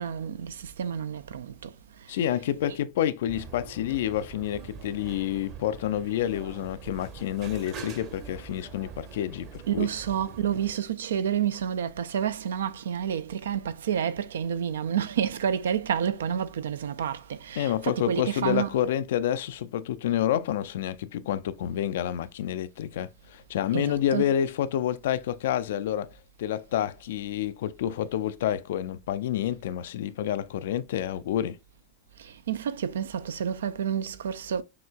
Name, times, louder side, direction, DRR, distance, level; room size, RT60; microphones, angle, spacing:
voice 1, 0.0-1.7 9.7-18.7 23.7-24.3 32.2-34.6, right 9 dB, 65° right, 0.4 m, -29 dB
voice 2, 2.1-9.9 17.6-26.1 26.4-31.6, left 11 dB, 55° left, 0.3 m, -28 dB
sound 1, 3.3-10.7, right 6 dB, 40° right, 1.1 m, -44 dB
6.6 x 3.0 x 2.2 m
figure-of-eight pair, 90°, 0 cm